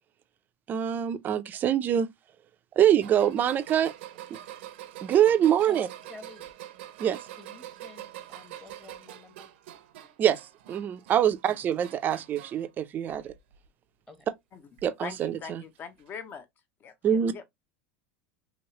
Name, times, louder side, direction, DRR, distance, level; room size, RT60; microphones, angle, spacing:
voice 1, 0.7-2.1 2.8-3.9 5.0-5.9 7.0-7.2 10.2-13.3 14.8-15.6 17.0-17.3, right 10 dB, 30° right, 0.4 m, -24 dB
sound 1, 3.0-12.7 13.1-13.7 14.8-14.9 16.0-16.1, right 13 dB, 80° right, 0.6 m, -45 dB
voice 2, 5.6-6.5 7.4-9.5 14.1-14.3, left 2 dB, 10° left, 0.9 m, -50 dB
voice 3, 15.0-16.5 16.8-16.9 17.3-17.5, left 6 dB, 35° left, 0.6 m, -41 dB
3.1 x 2.8 x 2.8 m
supercardioid pair, 125°, 6 cm